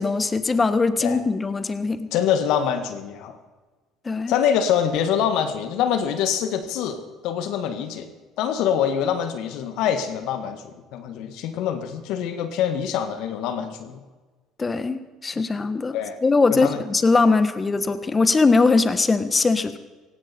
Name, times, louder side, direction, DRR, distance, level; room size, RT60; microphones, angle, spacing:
voice 1, 0.0-2.1 4.0-4.3 14.6-19.8, left 3 dB, 25° left, 12 dB, 1.4 m, -21 dB
voice 2, 2.1-3.4 4.3-8.1 8.4-14.0 15.9-16.2 16.5-16.8, left 8 dB, 70° left, 8 dB, 1.7 m, -25 dB
18.0 x 16.5 x 4.4 m, 1.3 s
hypercardioid pair, 70°, 0 cm